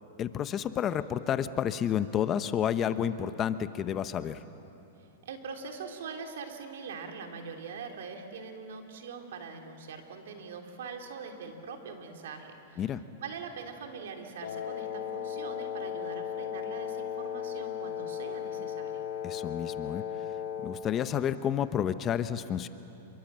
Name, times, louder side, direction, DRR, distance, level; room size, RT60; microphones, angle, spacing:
voice 1, 0.2-4.4 12.8-13.0 19.2-20.0 20.6-22.7, left 9 dB, 25° left, 12 dB, 0.8 m, -30 dB
voice 2, 5.2-12.8 13.2-19.1, right 5 dB, 75° right, 3 dB, 3.2 m, -42 dB
Wind instrument woodwind instrument, 14.4-20.9, left 9 dB, 75° left, 2.6 m, -36 dB
28.0 x 23.0 x 7.5 m, 3.0 s
hypercardioid pair, 140°, 0 cm